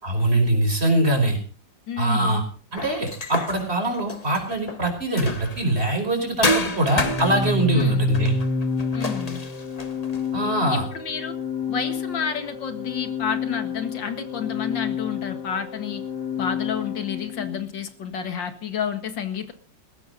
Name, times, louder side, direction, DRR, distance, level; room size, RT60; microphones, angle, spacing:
voice 1, 0.0-1.4 2.0-2.4 2.7-8.3 10.3-10.9, right 1 dB, 35° right, 3 dB, 5.2 m, -23 dB
voice 2, 1.9-2.5 7.7-8.1 8.9-9.4 10.7-11.3 11.7-16.0 16.4-19.5, left 7 dB, 90° left, 8 dB, 2.5 m, -30 dB
sound 1, 2.8-5.8 6.4-10.3, left 1 dB, 25° left, 1.3 m, -29 dB
Organ, 6.9-17.7, left 4 dB, 70° left, 1.8 m, -29 dB
20.0 x 15.0 x 4.0 m, 0.40 s
omnidirectional pair, 2.0 m